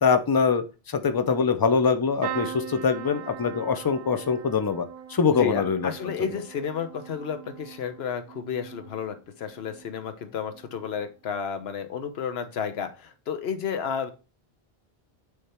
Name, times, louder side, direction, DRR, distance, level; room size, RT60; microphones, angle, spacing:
voice 1, 0.0-5.9, left 5 dB, 30° left, 10 dB, 0.4 m, -23 dB
sound 1, 2.2-10.1 10.5-11.0 12.3-12.5 12.7-12.8, right 9 dB, 65° right, 0.8 m, -41 dB
voice 2, 5.3-14.1, left 7 dB, 75° left, 10 dB, 1.0 m, -32 dB
6.5 x 3.6 x 4.2 m, 0.32 s
omnidirectional pair, 1.1 m